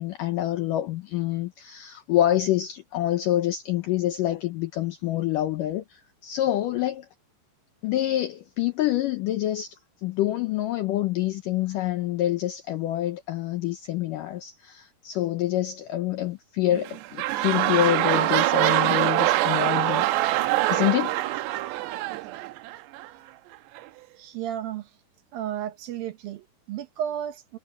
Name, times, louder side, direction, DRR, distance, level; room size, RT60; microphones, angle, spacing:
voice 1, 0.0-7.1 7.8-20.1 20.7-21.2, left 13 dB, 85° left, 1.9 m, -27 dB
sound 1, 16.7-23.1 23.8-23.9, right 16 dB, 85° right, 3.1 m, -24 dB
voice 2, 24.2-24.9 25.3-27.6, right 10 dB, 70° right, 2.7 m, -33 dB
omnidirectional pair, 4.8 m